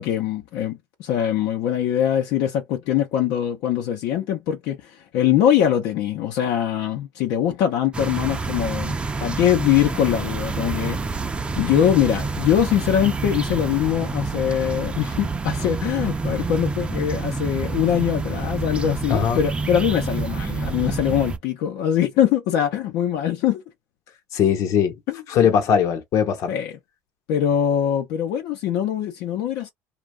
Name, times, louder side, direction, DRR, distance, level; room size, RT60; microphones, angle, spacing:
voice 1, 0.0-8.9 9.2-11.1 11.6-23.6 25.1-25.5 26.5-26.8 27.3-29.7, left 10 dB, 75° left, 0.8 m, -22 dB
sound 1, 7.9-21.4, right 3 dB, 15° right, 0.5 m, -28 dB
voice 2, 19.1-19.4 24.3-24.9 25.3-26.5, left 8 dB, 60° left, 1.0 m, -20 dB
2.5 x 2.4 x 3.3 m
cardioid pair, 115°, 6 cm